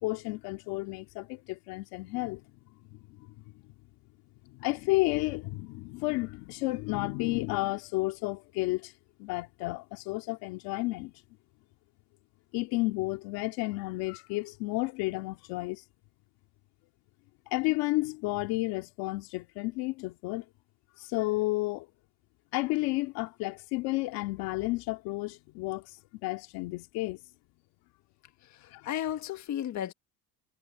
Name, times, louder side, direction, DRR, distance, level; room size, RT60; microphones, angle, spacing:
voice 1, 0.0-2.4 2.9-3.4 4.5-8.9 9.2-11.1 12.5-15.8 17.5-20.4 21.0-21.9 22.5-25.8 26.2-27.2 28.7-28.9, left 21 dB, 80° left, 2.5 m, -32 dB
voice 2, 28.5-29.9, left 11 dB, 50° left, 1.7 m, -34 dB
cardioid pair, 115°, 36 cm